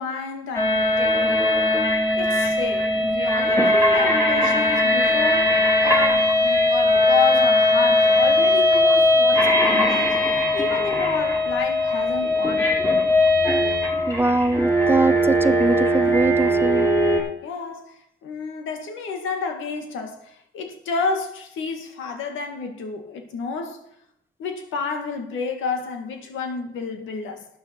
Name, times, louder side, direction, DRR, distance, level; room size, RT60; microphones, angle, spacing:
voice 1, 0.0-1.5 2.1-10.2 10.5-12.9 17.4-23.9 24.4-27.5, left 5 dB, 85° left, 2.0 m, -30 dB
sound 1, 0.6-17.2, left 1 dB, 15° left, 4.7 m, -19 dB
voice 2, 14.1-16.9, right 2 dB, 10° right, 0.6 m, -22 dB
12.5 x 9.4 x 4.6 m
cardioid pair, 90°, 20 cm